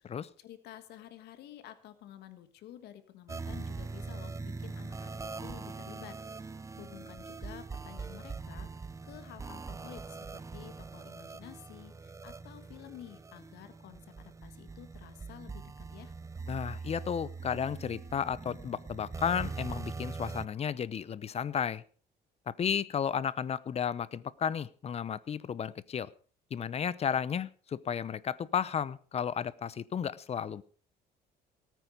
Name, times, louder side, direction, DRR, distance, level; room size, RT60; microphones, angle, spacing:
voice 1, 0.0-16.1, left 12 dB, 75° left, 11 dB, 1.7 m, -51 dB
sound 1, 3.3-20.5, right 4 dB, 20° right, 0.6 m, -42 dB
voice 2, 16.5-21.8 22.5-26.1 26.5-30.6, left 8 dB, 40° left, 19 dB, 0.8 m, -33 dB
18.0 x 9.4 x 5.2 m, 0.41 s
cardioid pair, 110°, 17 cm